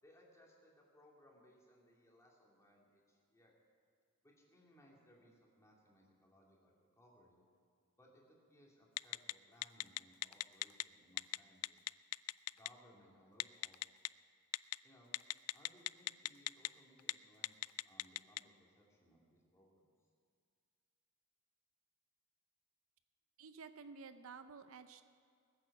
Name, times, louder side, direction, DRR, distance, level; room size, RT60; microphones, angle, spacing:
voice 1, 0.0-3.6 4.2-7.4 8.0-11.8 12.5-14.0 14.8-15.2 15.5-19.8, equal, 15° left, -2 dB, 2.7 m, -66 dB
Telephone, 9.0-9.3 9.6-10.8 11.2-11.4 11.6-12.7 13.4-14.1 14.5-14.7 15.1-16.7 17.0-17.1 17.4-18.4, left 17 dB, 85° left, 0.3 m, -37 dB
voice 2, 23.4-25.0, right 5 dB, 65° right, 10 dB, 0.6 m, -52 dB
19.5 x 8.6 x 7.3 m, 2.3 s
head